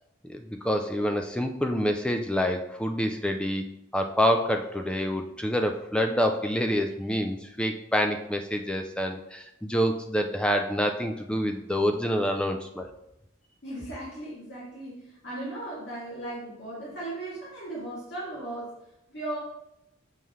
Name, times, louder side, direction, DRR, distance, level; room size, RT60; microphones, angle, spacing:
voice 1, 0.3-3.7 3.9-12.9, equal, 5° left, 5 dB, 0.4 m, -27 dB
voice 2, 13.6-18.8 19.1-19.4, right 1 dB, 55° left, -8 dB, 2.5 m, -37 dB
7.0 x 5.5 x 3.2 m, 0.85 s
head